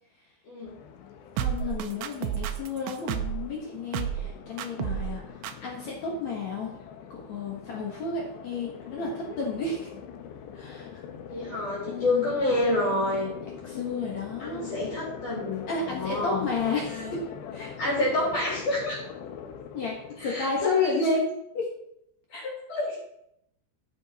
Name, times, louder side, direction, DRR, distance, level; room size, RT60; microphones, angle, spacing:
sound 1, 0.6-20.5, left 8 dB, 80° left, 2.9 m, -43 dB
voice 1, 1.3-6.7 7.1-9.9 10.5-11.0 11.9-12.3 13.6-14.7 15.7-17.2 17.5-18.1 19.7-21.1 21.6-21.7 22.3-22.5, left 3 dB, 60° left, -2 dB, 1.9 m, -33 dB
sound 2, 1.4-3.4 3.9-4.3 4.6-5.1 5.4-5.5, right 10 dB, 80° right, 2.8 m, -30 dB
voice 2, 11.3-13.3 14.4-17.1 17.8-19.0 20.2-21.2 22.7-23.0, left 2 dB, 45° left, -5 dB, 4.1 m, -28 dB
12.5 x 8.1 x 4.2 m, 0.78 s
omnidirectional pair, 5.4 m